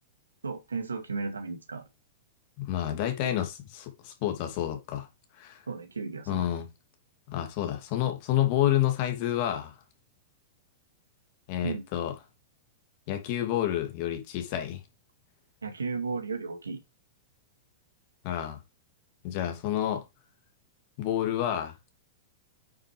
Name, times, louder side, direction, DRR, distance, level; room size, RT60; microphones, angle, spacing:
voice 1, 0.4-1.9 5.7-6.5 11.6-11.8 15.6-16.8, right 4 dB, 90° right, 2.4 m, -34 dB
voice 2, 2.6-5.1 5.4-5.6 6.3-6.7 7.3-9.7 11.5-12.1 13.1-14.8 18.2-18.6 19.2-20.0 21.0-21.7, left 12 dB, 50° left, 2.8 m, -29 dB
9.1 x 6.4 x 3.5 m
hypercardioid pair, 105°, 0 cm